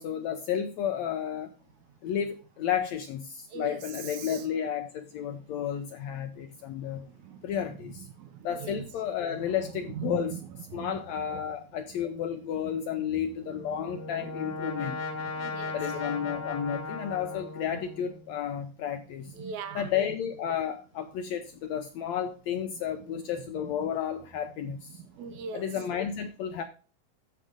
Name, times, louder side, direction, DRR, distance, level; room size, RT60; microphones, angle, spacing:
voice 1, 0.0-1.5 2.0-7.1 7.4-8.1 8.4-10.4 10.7-15.0 15.7-19.3 19.7-25.0 25.5-26.6, left 9 dB, 80° left, 1.6 m, -32 dB
voice 2, 6.9-7.4 8.2-8.3 8.6-8.8 10.0-10.4 10.7-11.0 15.3-15.8 19.3-19.9 25.2-25.7, right 6 dB, 70° right, 2.1 m, -39 dB
Brass instrument, 13.5-18.3, left 3 dB, 55° left, 0.8 m, -37 dB
13.5 x 4.9 x 3.7 m
omnidirectional pair, 3.8 m